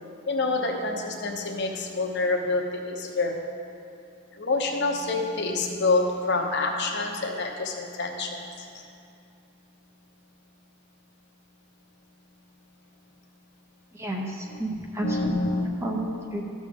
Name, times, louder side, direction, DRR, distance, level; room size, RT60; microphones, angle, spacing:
voice 1, 0.3-3.4 4.4-8.4 14.5-14.6 15.0-15.7, left 3 dB, 50° left, 2 dB, 0.9 m, -27 dB
voice 2, 13.9-16.4, right 1 dB, 10° right, 0 dB, 0.6 m, -32 dB
13.0 x 6.3 x 3.6 m, 2.5 s
head